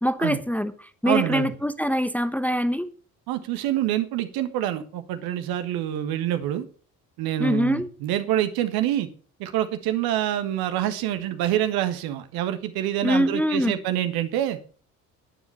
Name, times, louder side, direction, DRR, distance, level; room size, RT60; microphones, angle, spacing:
voice 1, 0.0-0.7 1.0-2.9 7.4-7.9 13.0-13.8, equal, 5° left, 1.0 m, -23 dB
voice 2, 1.0-1.5 3.3-6.7 7.2-9.1 9.4-14.6, right 12 dB, 60° right, 1.6 m, -26 dB
10.5 x 9.9 x 5.6 m
figure-of-eight pair, 50°, 43 cm